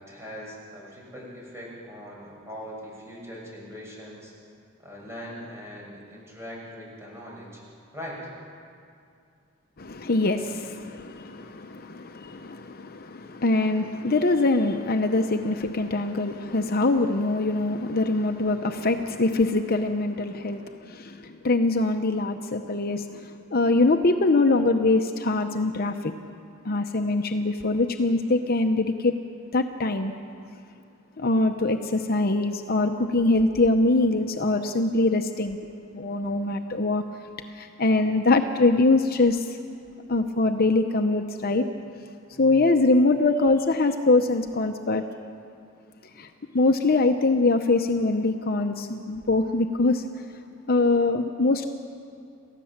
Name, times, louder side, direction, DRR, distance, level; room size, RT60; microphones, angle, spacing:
voice 1, 0.0-4.3 4.8-7.6 7.9-8.2 42.3-42.6, equal, 15° right, -4 dB, 6.5 m, -41 dB
voice 2, 9.8-26.1 26.6-29.2 29.5-30.1 31.2-35.6 35.9-37.0 37.5-39.6 40.1-41.7 42.4-45.1 46.2-46.3 46.5-50.0 50.7-51.6, left 2 dB, 50° left, 6 dB, 0.8 m, -23 dB
28.5 x 15.0 x 7.3 m, 2.4 s
head